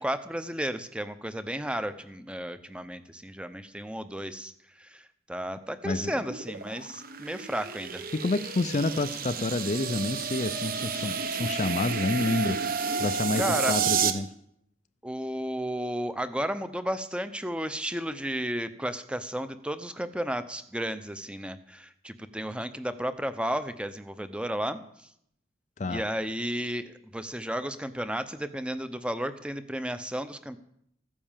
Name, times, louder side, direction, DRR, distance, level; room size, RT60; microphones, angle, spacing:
voice 1, 0.0-4.5 4.8-8.0 13.4-13.8 15.0-25.1 25.8-30.6, equal, 5° right, 11 dB, 0.8 m, -33 dB
sound 1, 6.1-14.1, right 5 dB, 45° right, 1.1 m, -31 dB
voice 2, 8.1-12.6 13.0-14.3 25.8-26.0, left 2 dB, 40° left, 12 dB, 0.5 m, -29 dB
15.0 x 10.0 x 7.4 m, 0.72 s
head